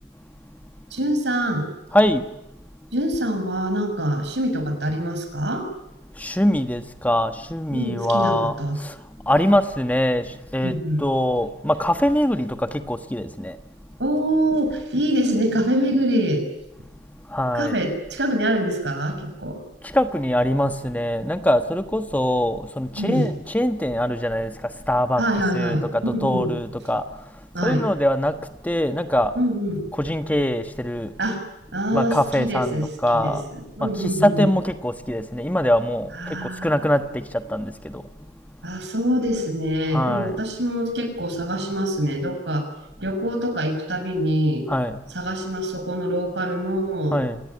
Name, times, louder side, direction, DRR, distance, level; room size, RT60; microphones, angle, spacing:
voice 1, 0.9-1.7 2.9-5.7 7.7-8.8 10.6-11.0 14.0-16.4 17.5-19.6 23.0-23.3 25.2-26.5 27.5-27.8 29.3-29.8 31.2-31.4 31.7-32.9 33.1-33.3 33.8-34.5 36.2-36.8 38.6-42.7 43.0-44.7 45.1-47.2, equal, 80° right, 6.5 m, -24 dB
voice 2, 1.9-2.4 6.1-13.6 17.1-17.8 19.8-25.2 25.5-29.3 30.0-31.2 31.9-33.4 33.8-38.1 38.5-38.6 39.9-40.4 44.7-45.1 47.1-47.4, left 1 dB, 10° left, 1.2 m, -23 dB
27.5 x 18.0 x 9.7 m
head